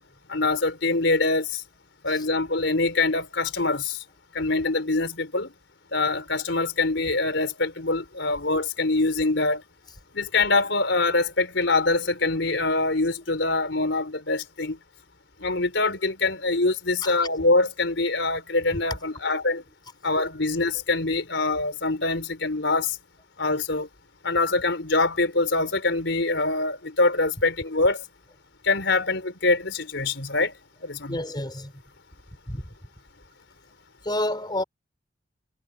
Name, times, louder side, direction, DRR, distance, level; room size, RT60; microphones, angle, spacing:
voice 1, 0.3-1.6 2.0-4.0 4.3-5.5 5.9-9.6 10.1-14.8 15.4-19.6 20.0-23.0 23.4-23.9 24.2-28.0 28.6-30.5 30.8-31.2, left 3 dB, 75° left, 4.3 m, -24 dB
voice 2, 31.1-31.7 32.5-32.6 34.0-34.6, left 1 dB, 25° left, 4.1 m, -29 dB
head